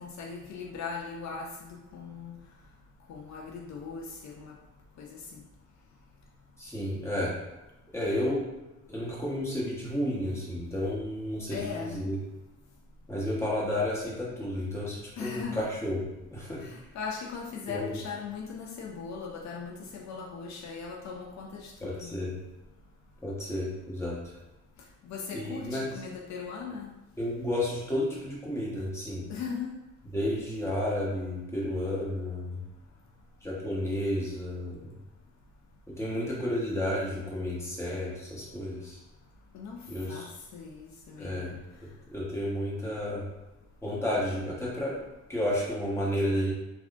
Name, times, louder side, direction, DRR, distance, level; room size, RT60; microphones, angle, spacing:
voice 1, 0.0-2.3 3.1-4.5 5.0-5.4 11.5-12.0 15.2-15.7 16.6-22.2 25.0-26.9 29.3-29.7 39.5-39.8 40.1-40.3 40.5-41.6, left 5 dB, 65° left, 0 dB, 0.5 m, -39 dB
voice 2, 6.6-7.3 7.9-8.4 8.9-12.2 13.1-16.0 16.3-16.6 17.7-18.0 21.8-22.3 23.2-24.4 25.3-25.9 27.2-29.3 30.1-32.6 33.4-34.9 35.9-39.0 39.9-40.3 41.2-41.5 42.1-43.2 43.8-44.9 45.3-46.5, left 1 dB, 10° left, -6 dB, 1.1 m, -31 dB
3.6 x 2.3 x 2.4 m, 1.0 s
cardioid pair, 90°, 30 cm